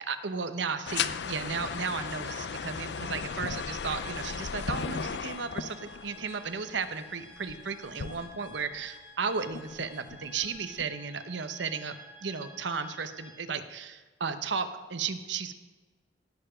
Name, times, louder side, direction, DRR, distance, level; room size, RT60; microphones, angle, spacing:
voice 1, 0.1-15.5, right 5 dB, 85° right, 10 dB, 0.9 m, -34 dB
sound 1, 0.9-8.9 9.4-10.9, left 6 dB, 70° left, 0.5 m, -36 dB
sound 2, 1.7-13.3, left 1 dB, 5° right, 2.7 m, -51 dB
17.5 x 6.9 x 5.1 m, 1.3 s
head